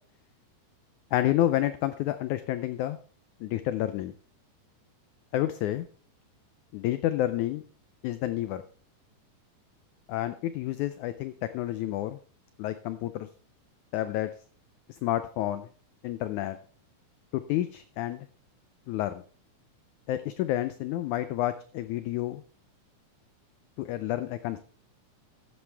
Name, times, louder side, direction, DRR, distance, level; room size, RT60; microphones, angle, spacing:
voice 1, 1.1-3.0 3.4-4.1 5.3-5.9 6.7-7.6 8.0-8.6 10.1-12.2 12.6-13.3 13.9-14.3 14.9-15.7 16.0-16.6 17.3-18.3 18.9-19.2 20.1-22.4 23.8-24.6, left 14 dB, 80° left, 12 dB, 1.7 m, -29 dB
13.5 x 9.6 x 3.4 m, 0.42 s
omnidirectional pair, 4.0 m